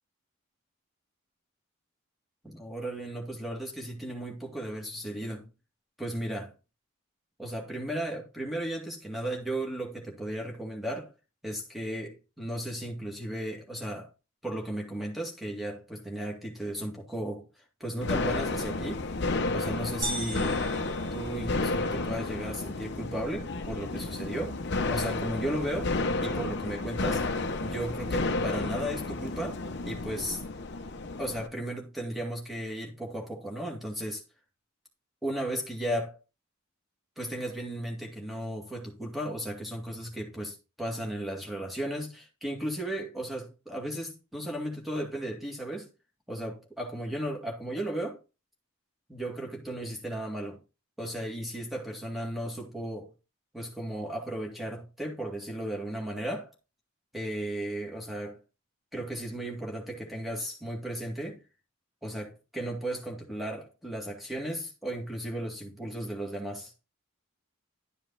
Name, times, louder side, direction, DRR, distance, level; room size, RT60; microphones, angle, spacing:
voice 1, 2.4-5.5 6.0-6.5 7.4-11.1 11.4-14.1 14.4-17.5 17.8-19.1 19.5-20.6 21.1-24.6 24.9-26.0 26.2-27.3 27.6-29.6 29.9-30.4 31.2-34.2 35.2-36.2 37.2-45.9 46.3-48.2 49.1-50.6 51.0-53.1 53.5-56.5 57.1-58.4 58.9-61.4 62.0-66.7, right 1 dB, ahead, 2.0 m, -35 dB
sound 1, 18.0-31.5, left 3 dB, 50° left, 0.8 m, -32 dB
sound 2, 20.0-22.0, right 1 dB, 40° right, 3.1 m, -38 dB
11.5 x 5.1 x 4.0 m
head